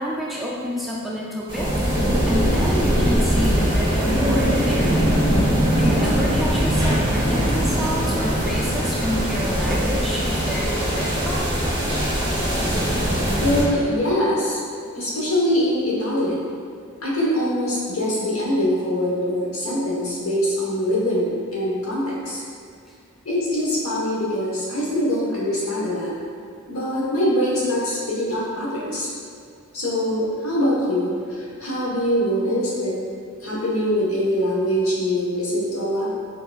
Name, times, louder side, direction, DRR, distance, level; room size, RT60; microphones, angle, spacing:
voice 1, 0.0-1.7 2.3-11.5, equal, ahead, -6 dB, 0.3 m, -29 dB
sound 1, 1.5-13.6, equal, 20° right, 1.0 m, -21 dB
voice 2, 13.4-14.6 14.9-16.5 17.0-22.4 23.2-26.1 26.7-29.1 29.7-33.0 33.4-36.1, equal, 70° left, -6 dB, 1.2 m, -23 dB
4.4 x 4.0 x 2.4 m, 2.3 s
head